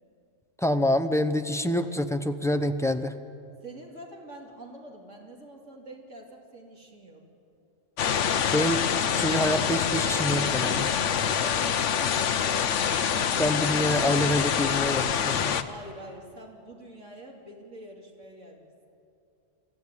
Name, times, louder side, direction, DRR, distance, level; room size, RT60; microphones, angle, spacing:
voice 1, 0.6-3.2 8.5-8.8 9.1-10.9 13.4-15.6, left 1 dB, 5° left, 8 dB, 0.7 m, -26 dB
voice 2, 3.6-7.2 11.4-12.5 15.7-18.9, right 1 dB, 90° right, 0 dB, 3.4 m, -46 dB
sound 1, 8.0-15.6, left 8 dB, 80° left, 1.2 m, -26 dB
23.5 x 14.5 x 9.8 m, 2.6 s
omnidirectional pair, 1.2 m